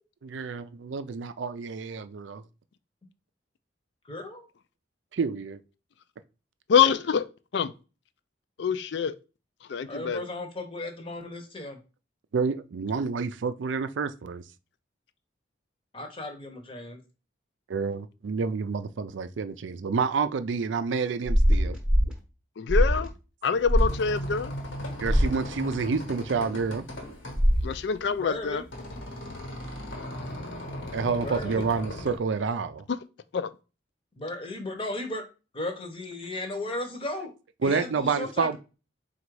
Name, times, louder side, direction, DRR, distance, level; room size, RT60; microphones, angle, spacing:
voice 1, 0.2-2.4 5.1-5.6 10.1-10.2 12.3-14.4 17.7-21.8 25.0-26.8 30.9-32.8 37.6-38.6, right 5 dB, 75° right, 0.4 m, -29 dB
voice 2, 4.0-4.5 9.9-11.8 15.9-17.0 28.2-28.6 31.2-31.7 34.2-35.2 35.5-37.3 37.6-38.6, left 2 dB, 30° left, 0.7 m, -35 dB
voice 3, 6.7-7.2 7.5-7.7 8.6-9.1 9.7-10.2 22.6-23.1 23.4-24.5 27.6-28.6 33.3-33.5, left 6 dB, 65° left, 0.4 m, -25 dB
sound 1, 21.3-22.1 22.7-23.1 23.7-23.9 25.0-25.3 27.4-27.7, equal, 5° right, 0.7 m, -22 dB
sound 2, 23.5-32.2, equal, 80° left, 1.2 m, -38 dB
4.0 x 2.4 x 4.6 m
head